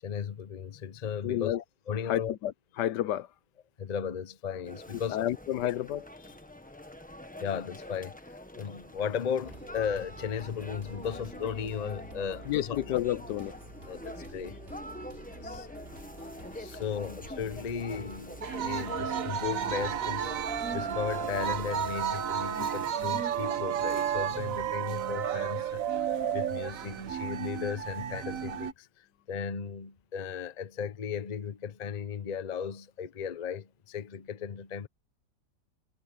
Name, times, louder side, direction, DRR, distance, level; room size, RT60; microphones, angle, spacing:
voice 1, 0.0-1.6 1.9-2.3 3.8-5.2 5.6-5.7 7.4-8.2 8.5-12.8 13.9-14.6 16.5-34.9, left 7 dB, 35° left, 0.6 m, -36 dB
voice 2, 1.2-1.6 2.1-3.3 4.9-6.4 12.4-13.6 15.4-15.7 16.4-16.5 22.5-22.7 23.0-23.2, left 12 dB, 80° left, 1.3 m, -31 dB
sound 1, 4.6-24.6, left 1 dB, 5° left, 1.0 m, -45 dB
sound 2, 9.4-22.2, right 1 dB, 35° right, 4.2 m, -49 dB
sound 3, 18.4-28.7, right 9 dB, 60° right, 1.2 m, -32 dB
omnidirectional pair, 1.8 m